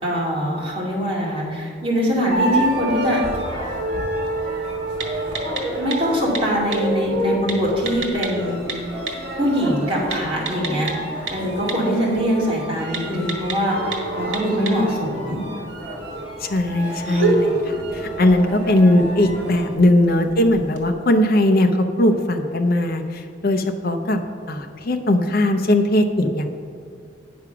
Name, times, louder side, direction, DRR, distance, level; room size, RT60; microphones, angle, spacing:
voice 1, 0.0-3.2 5.7-8.6 9.4-10.9 11.3-15.4, equal, 30° right, -5 dB, 2.4 m, -22 dB
sound 1, 2.3-19.7, right 1 dB, 60° right, 2.0 m, -29 dB
sound 2, 2.6-20.9, right 3 dB, 75° right, 1.5 m, -32 dB
voice 2, 16.4-24.2 24.5-26.5, left 1 dB, 50° left, 5 dB, 0.7 m, -19 dB
9.5 x 6.0 x 5.9 m, 2.4 s
head